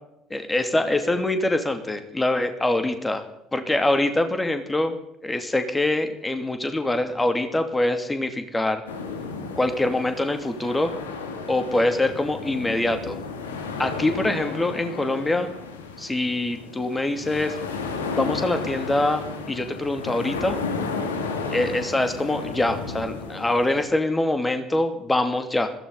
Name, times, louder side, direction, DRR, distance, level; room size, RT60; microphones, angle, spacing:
voice 1, 0.3-3.2 3.5-5.0 5.2-8.8 9.6-10.9 11.5-13.2 13.8-15.5 16.0-17.5 18.1-20.6 21.5-25.7, left 2 dB, 15° left, 8 dB, 2.8 m, -24 dB
sound 1, 8.9-23.8, left 4 dB, 75° left, 2.3 m, -33 dB
21.5 x 16.0 x 4.1 m, 0.79 s
figure-of-eight pair, 55°, 0 cm